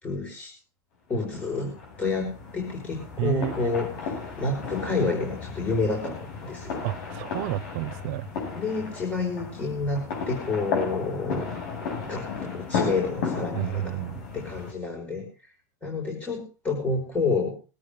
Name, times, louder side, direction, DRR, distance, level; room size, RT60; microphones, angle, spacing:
voice 1, 0.0-0.5 1.1-1.7 2.0-6.8 8.5-11.5 12.0-14.0 14.3-15.3 15.8-17.5, left 3 dB, 15° left, 4.2 m, -29 dB
sound 1, 1.2-14.7, left 5 dB, 85° left, 7.9 m, -34 dB
voice 2, 3.2-3.7 6.8-8.3 13.5-14.2, right 16 dB, 65° right, 0.9 m, -30 dB
21.0 x 8.6 x 5.0 m
supercardioid pair, 140°, 9 cm